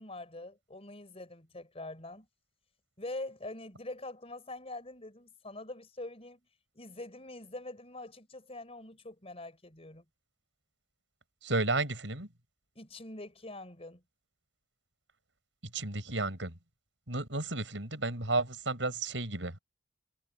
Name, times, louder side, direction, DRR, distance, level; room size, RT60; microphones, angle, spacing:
voice 1, 0.0-2.3 3.0-6.4 6.7-10.0 12.7-14.0, left 2 dB, 35° left, 4.8 m, -44 dB
voice 2, 11.4-12.3 15.7-16.5 17.1-19.6, right 2 dB, 85° right, 5.7 m, -32 dB
head